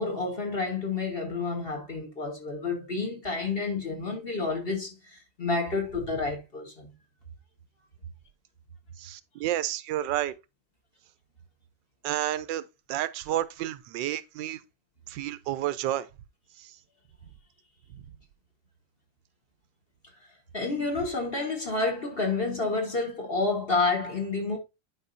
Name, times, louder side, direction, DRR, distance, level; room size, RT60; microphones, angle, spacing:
voice 1, 0.0-6.9 20.5-24.6, left 3 dB, 35° left, 1.4 m, -29 dB
voice 2, 9.0-10.3 12.0-12.6 12.9-14.6 15.1-16.1 16.6-16.7, right 13 dB, 90° right, 1.3 m, -30 dB
10.0 x 4.9 x 2.6 m
omnidirectional pair, 1.9 m